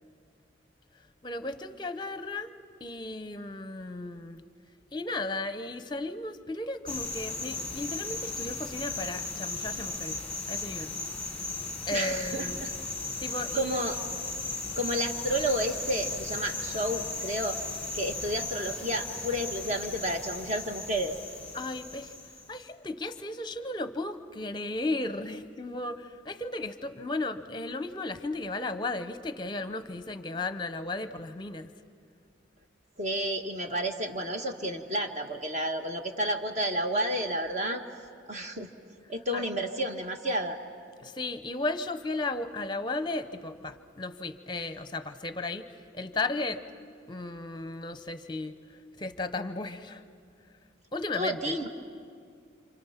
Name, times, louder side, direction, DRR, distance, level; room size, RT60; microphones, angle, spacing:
voice 1, 1.2-2.5 2.8-4.4 4.9-10.2 10.5-10.9 11.9-12.6 13.2-13.7 21.5-22.1 22.5-31.7 39.3-39.5 41.0-45.7 45.9-46.6 47.1-48.5 49.0-50.0 50.9-51.6, left 2 dB, 25° left, 10 dB, 0.8 m, -35 dB
sound 1, 6.9-22.6, left 3 dB, 5° left, 1.5 m, -36 dB
voice 2, 11.9-12.7 13.5-14.0 14.8-17.6 17.9-21.2 33.0-37.8 38.3-38.7 39.1-40.6 51.1-51.7, right 1 dB, 35° right, 4 dB, 1.5 m, -31 dB
28.5 x 28.0 x 5.8 m, 2.3 s
head